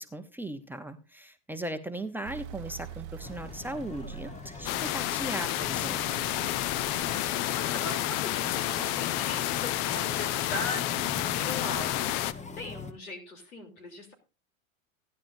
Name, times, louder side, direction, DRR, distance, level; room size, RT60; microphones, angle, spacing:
voice 1, 0.0-6.0, right 1 dB, 5° right, 6 dB, 0.7 m, -38 dB
sound 1, 2.2-7.8, right 10 dB, 55° right, 0.7 m, -46 dB
sound 2, 3.2-12.9, left 4 dB, 15° left, 1.0 m, -42 dB
sound 3, 4.6-12.3, left 14 dB, 45° left, 0.6 m, -30 dB
voice 2, 6.3-14.1, left 2 dB, 90° left, 6 dB, 3.4 m, -40 dB
16.0 x 10.5 x 2.6 m, 0.30 s
hypercardioid pair, 110°, 41 cm